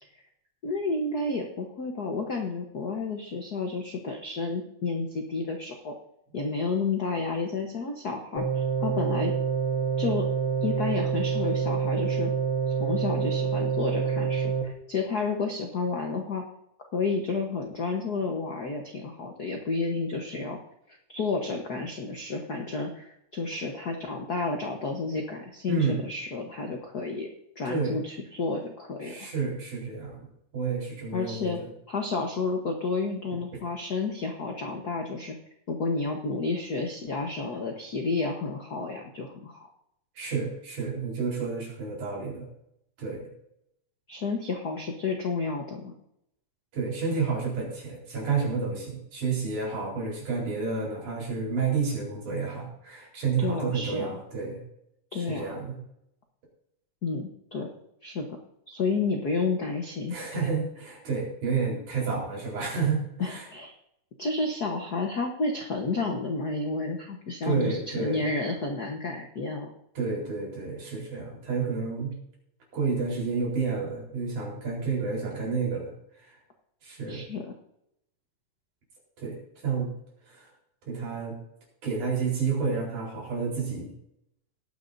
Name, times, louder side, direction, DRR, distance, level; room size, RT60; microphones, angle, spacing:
voice 1, 0.6-5.9 6.3-9.3 10.0-10.3 10.6-12.3 12.8-16.4 16.9-20.6 21.1-27.3 27.6-29.3 31.1-31.6 31.9-35.3 35.7-39.7 44.1-45.9 53.4-54.2 55.1-55.5 57.0-57.7 58.0-58.4 58.7-60.2 63.2-63.7 64.2-69.7 77.1-77.5, left 3 dB, 80° left, 2 dB, 0.8 m, -31 dB
sound 1, 8.4-14.6, right 6 dB, 40° left, 1.5 m, -27 dB
voice 2, 25.7-26.0 27.7-28.0 29.0-30.3 30.5-31.7 33.5-33.6 40.2-42.5 43.0-43.3 46.7-54.6 55.1-55.8 60.1-63.5 67.4-68.3 70.0-72.1 72.7-75.9 76.2-76.4 76.8-77.2 79.2-79.9 80.3-80.5 80.9-81.4 81.8-83.9, right 5 dB, 75° right, -2 dB, 5.5 m, -30 dB
18.5 x 9.6 x 2.7 m, 0.78 s
omnidirectional pair, 3.6 m